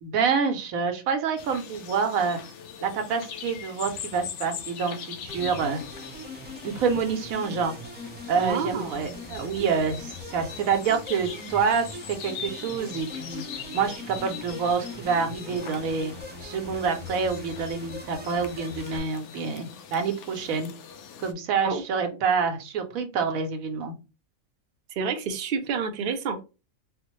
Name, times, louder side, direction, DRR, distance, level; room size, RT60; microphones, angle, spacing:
voice 1, 0.0-2.4 2.8-5.8 6.6-7.7 8.3-13.4 13.7-16.1 16.4-20.7 21.2-23.9, right 5 dB, 80° right, 6 dB, 1.1 m, -27 dB
sound 1, 1.4-21.3, left 7 dB, 65° left, 0.8 m, -42 dB
sound 2, 5.3-19.0, left 1 dB, 15° right, 0.4 m, -41 dB
voice 2, 8.4-9.0 21.6-21.8 25.0-26.4, right 5 dB, 55° right, 5 dB, 0.7 m, -29 dB
4.2 x 2.1 x 3.0 m, 0.29 s
omnidirectional pair, 1.4 m